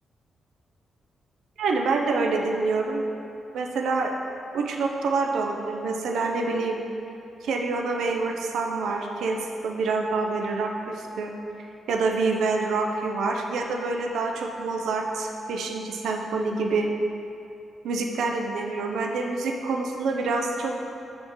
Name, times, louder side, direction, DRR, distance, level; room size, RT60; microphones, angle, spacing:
voice 1, 1.6-3.0 3.5-4.1 4.5-6.8 7.4-11.3 11.9-16.9 17.8-20.7, right 3 dB, 80° right, 2 dB, 0.5 m, -26 dB
4.5 x 4.3 x 5.3 m, 2.7 s
wide cardioid pair, 175°, 0 cm